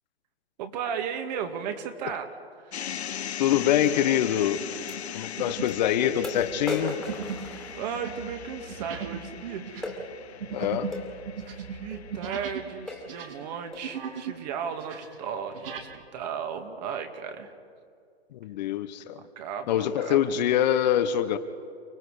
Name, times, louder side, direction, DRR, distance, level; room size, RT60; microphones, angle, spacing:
voice 1, 0.6-2.3 2.6-2.9 7.4-9.7 11.8-17.5 19.4-20.3, right 7 dB, 40° right, 6 dB, 2.2 m, -35 dB
sound 1, 2.7-14.9, left 9 dB, 80° left, 0.7 m, -40 dB
voice 2, 3.4-4.6 5.1-7.0 10.5-10.9 18.3-19.2 19.7-21.4, left 10 dB, 45° left, 11 dB, 1.0 m, -24 dB
sound 2, 3.7-4.0 4.5-4.8 5.4-5.8 6.1-12.7 13.0-14.4 14.7-15.9, right 7 dB, 60° right, 2.7 m, -38 dB
sound 3, 3.9-4.0 4.9-5.0 5.7-5.8 6.2-8.2 9.8-10.0 10.9-11.1 11.9-12.1 12.5-12.6 12.9-13.2 13.7-14.0, left 2 dB, ahead, 2.3 m, -36 dB
29.5 x 19.5 x 5.0 m, 2.3 s
hypercardioid pair, 135°, 32 cm